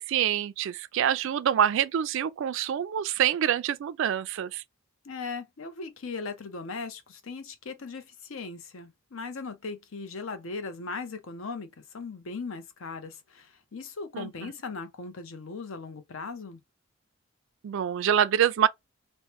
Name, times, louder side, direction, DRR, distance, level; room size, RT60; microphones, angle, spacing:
voice 1, 0.0-4.6 14.1-14.3 17.6-18.7, right 9 dB, 60° right, 0.3 m, -26 dB
voice 2, 5.0-16.6, left 4 dB, 65° left, 0.6 m, -38 dB
3.0 x 2.1 x 2.8 m
head